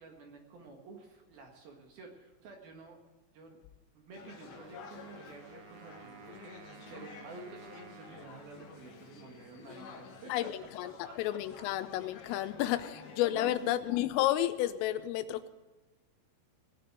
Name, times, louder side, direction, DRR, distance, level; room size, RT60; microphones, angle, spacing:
voice 1, 0.0-3.0 3.3-3.6 3.9-6.5 6.9-10.5 11.0-11.6 12.3-12.4 12.7-12.9 13.3-13.7, right 4 dB, 60° right, 3.0 m, -51 dB
sound 1, 4.1-13.5, left 5 dB, 60° left, 3.1 m, -51 dB
Wind instrument woodwind instrument, 4.5-10.1, right 6 dB, 85° right, 2.2 m, -55 dB
voice 2, 10.3-10.9 11.2-15.5, left 13 dB, 90° left, 3.4 m, -31 dB
18.5 x 6.7 x 9.1 m
omnidirectional pair, 5.8 m